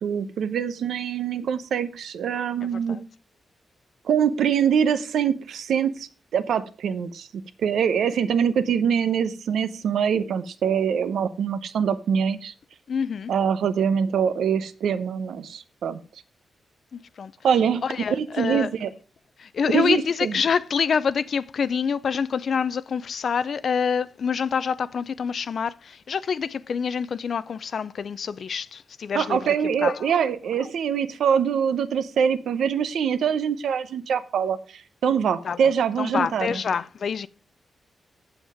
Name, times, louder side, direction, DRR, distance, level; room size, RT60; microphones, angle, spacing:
voice 1, 0.0-3.0 4.0-12.5 13.3-16.0 17.4-17.8 18.1-18.9 19.7-20.4 29.1-36.6, right 7 dB, 80° right, 0.8 m, -24 dB
voice 2, 2.6-3.0 12.9-13.3 16.9-17.3 17.8-18.7 19.4-29.5 29.8-30.1 35.4-35.6 36.0-37.3, left 6 dB, 55° left, 0.5 m, -26 dB
7.9 x 7.4 x 4.9 m
wide cardioid pair, 135°, 0 cm